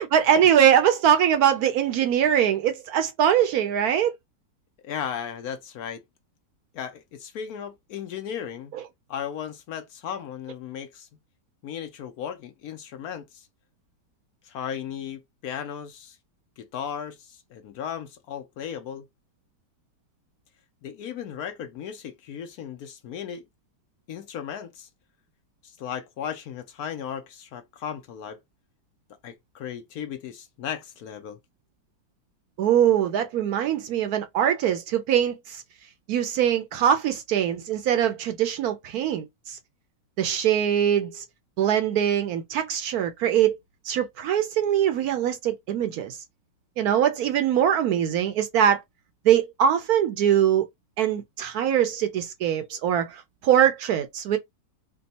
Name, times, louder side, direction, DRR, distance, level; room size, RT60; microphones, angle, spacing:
voice 1, 0.0-4.1 8.7-8.8 32.6-35.6 36.1-39.6 40.2-41.2 41.6-43.6 43.8-46.2 46.8-48.8 49.2-50.6 51.0-54.4, right 9 dB, 70° right, 1.0 m, -22 dB
voice 2, 4.8-6.0 6.7-8.7 9.1-11.1 11.6-13.5 14.4-16.2 16.6-19.0 20.8-23.4 24.1-24.9 25.6-28.4 29.2-31.4, left 8 dB, 70° left, 1.0 m, -36 dB
3.5 x 2.2 x 4.1 m
omnidirectional pair, 1.9 m